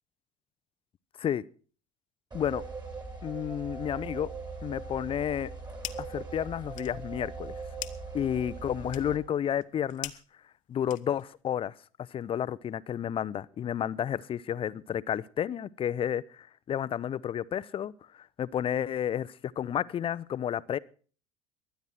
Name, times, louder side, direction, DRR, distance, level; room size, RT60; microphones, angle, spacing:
sound 1, 2.3-9.2, right 4 dB, 25° right, 3.5 m, -40 dB
voice 1, 3.2-4.3 4.6-5.5 6.1-7.5 8.1-10.1 10.7-11.7 12.1-17.9 18.4-20.8, left 9 dB, 30° left, 19 dB, 0.7 m, -31 dB
sound 2, 5.3-6.2 6.5-11.4, left 15 dB, 50° left, 1.1 m, -44 dB
23.0 x 9.4 x 4.4 m, 0.40 s
figure-of-eight pair, 70°, 17 cm